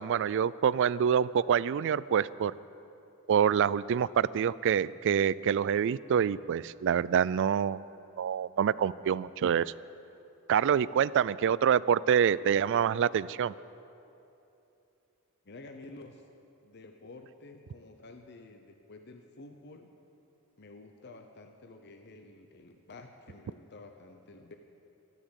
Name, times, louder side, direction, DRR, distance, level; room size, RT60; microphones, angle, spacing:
voice 1, 0.0-2.5 3.3-7.8 8.2-9.7 10.5-13.5, right 8 dB, 55° right, 19 dB, 0.3 m, -26 dB
voice 2, 15.4-16.3 16.6-20.0 20.6-24.5, left 2 dB, 50° left, 5 dB, 0.8 m, -50 dB
13.5 x 12.0 x 8.1 m, 2.8 s
head